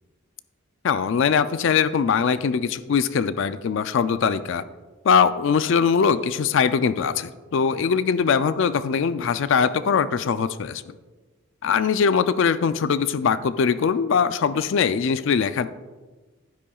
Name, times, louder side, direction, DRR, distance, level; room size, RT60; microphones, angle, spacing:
voice 1, 0.8-4.6 5.0-10.9 11.6-15.7, left 6 dB, 60° left, 13 dB, 0.4 m, -21 dB
11.5 x 10.0 x 2.3 m, 1.3 s
head